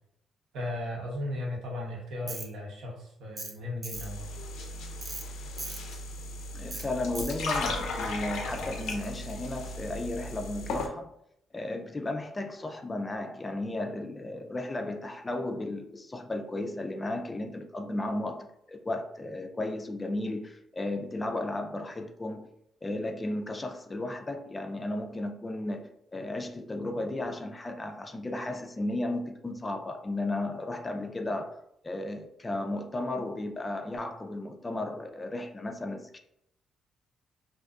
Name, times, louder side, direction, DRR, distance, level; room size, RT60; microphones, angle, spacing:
voice 1, 0.5-4.3, left 1 dB, 80° right, 0.8 m, -36 dB
Tools, 2.3-2.5 3.4-3.6 3.8-4.1 5.0-5.2 5.6-5.8 6.7-6.8 7.1-7.4, right 2 dB, 35° right, 0.6 m, -38 dB
sound 1, 3.9-10.9, left 2 dB, 80° left, 0.5 m, -36 dB
voice 2, 6.5-11.1 11.5-22.5 22.8-31.6 31.8-36.2, left 2 dB, 25° left, 0.3 m, -34 dB
2.5 x 2.3 x 2.4 m
cardioid pair, 90°, 0 cm